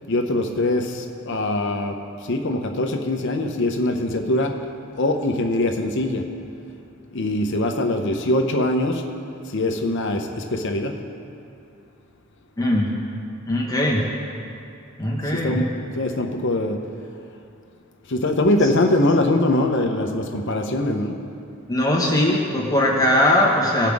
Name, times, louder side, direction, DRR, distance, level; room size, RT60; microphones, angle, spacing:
voice 1, 0.1-2.0 2.2-4.5 5.0-6.2 7.1-9.0 9.5-10.9 15.3-15.7 15.9-16.8 18.1-21.2, left 1 dB, 60° left, 4 dB, 0.8 m, -22 dB
voice 2, 12.6-12.9 13.5-14.0 15.0-15.6 21.7-23.9, left 1 dB, 20° left, -3 dB, 1.4 m, -20 dB
17.5 x 5.8 x 3.6 m, 2.6 s
head